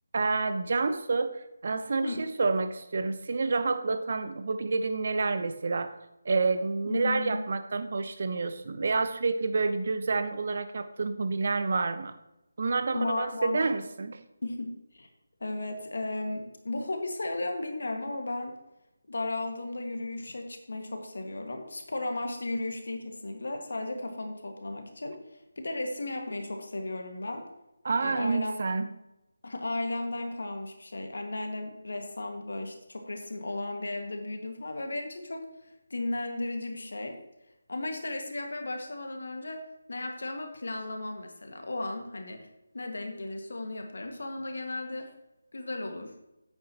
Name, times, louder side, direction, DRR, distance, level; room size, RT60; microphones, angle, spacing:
voice 1, 0.1-6.0 6.2-12.1 12.6-14.2 27.8-28.9, right 4 dB, 50° right, 10 dB, 0.9 m, -29 dB
voice 2, 6.8-7.4 12.9-13.6 14.4-15.1 15.4-18.5 19.1-27.4 28.0-28.5 29.4-37.2 37.7-39.6 39.9-42.5 42.7-45.1 45.5-46.1, left 2 dB, 65° left, 4 dB, 1.8 m, -35 dB
10.5 x 8.9 x 3.0 m, 0.92 s
figure-of-eight pair, 155°, 0 cm